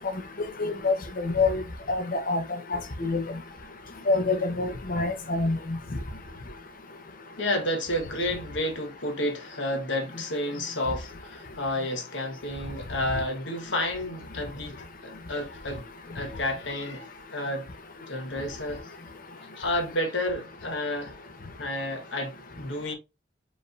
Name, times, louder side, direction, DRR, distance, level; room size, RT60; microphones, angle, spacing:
voice 1, 0.6-1.6 1.9-2.4 2.7-3.2 4.1-5.8, left 3 dB, 50° left, 0.9 m, -26 dB
voice 2, 7.4-15.8 16.1-17.7 18.1-18.8 19.3-21.1 21.6-22.9, left 1 dB, 75° left, 1.3 m, -31 dB
4.9 x 3.3 x 2.5 m
head